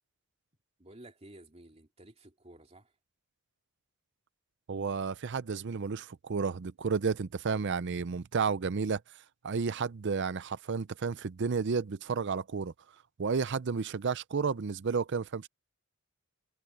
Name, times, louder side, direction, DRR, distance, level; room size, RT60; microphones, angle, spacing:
voice 1, 0.8-2.9, right 1 dB, 30° right, 2.9 m, -53 dB
voice 2, 4.7-9.0 9.4-12.7 13.2-15.5, right 5 dB, 55° right, 0.5 m, -32 dB
head